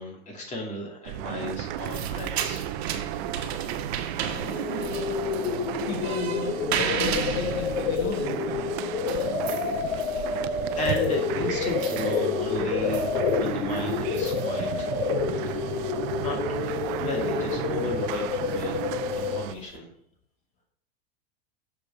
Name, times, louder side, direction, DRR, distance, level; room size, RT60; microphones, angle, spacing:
voice 1, 0.0-2.6 9.9-10.2 10.8-14.9 15.5-15.8 16.2-16.6 17.0-19.9, left 1 dB, 25° left, -2 dB, 2.5 m, -35 dB
sound 1, 1.1-19.6, right 13 dB, 50° right, 0.5 m, -34 dB
sound 2, 1.6-19.8, right 7 dB, 85° right, 1.2 m, -37 dB
sound 3, 4.3-19.4, left 6 dB, 65° left, 1.2 m, -29 dB
voice 2, 5.9-8.9 19.2-19.3, left 4 dB, 45° left, 0 dB, 1.3 m, -34 dB
6.8 x 4.8 x 6.2 m, 0.66 s
supercardioid pair, 135°, 31 cm